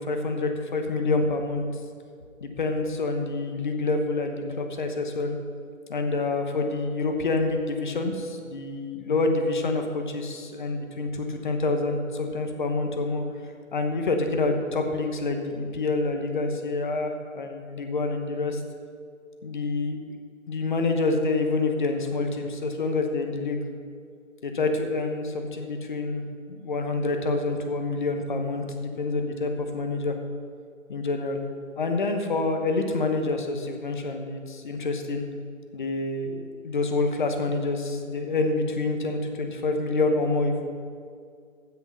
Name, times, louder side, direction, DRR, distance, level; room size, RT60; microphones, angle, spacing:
voice 1, 0.0-1.7 2.4-5.4 5.9-13.2 13.7-18.6 19.4-20.0 20.5-23.6 24.4-26.2 26.5-30.1 30.9-31.4 31.8-35.2 35.7-40.6, left 3 dB, 35° left, 5 dB, 1.1 m, -27 dB
15.0 x 6.4 x 5.6 m, 2.2 s
figure-of-eight pair, 150°, 41 cm